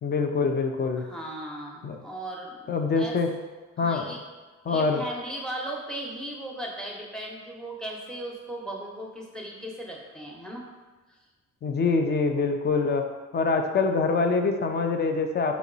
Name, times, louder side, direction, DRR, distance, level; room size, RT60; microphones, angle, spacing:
voice 1, 0.0-1.0 1.8-2.0 2.7-3.3 3.8-4.1 4.7-5.0 11.6-13.0 13.3-15.6, left 4 dB, 35° left, 5 dB, 0.4 m, -24 dB
voice 2, 1.0-3.2 3.8-4.2 4.7-10.6, right 1 dB, ahead, -2 dB, 0.7 m, -37 dB
3.0 x 2.9 x 3.9 m, 1.3 s
cardioid pair, 90°, 30 cm